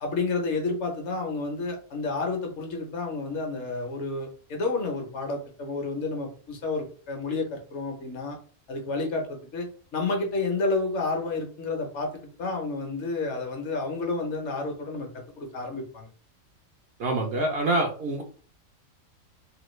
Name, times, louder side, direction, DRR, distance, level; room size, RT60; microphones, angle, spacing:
voice 1, 0.0-8.4 8.7-9.7 9.9-12.1 12.4-16.1, left 3 dB, 65° left, 2 dB, 1.0 m, -30 dB
voice 2, 17.0-18.2, right 2 dB, 60° right, 3 dB, 0.7 m, -26 dB
3.0 x 2.2 x 3.1 m, 0.40 s
omnidirectional pair, 1.4 m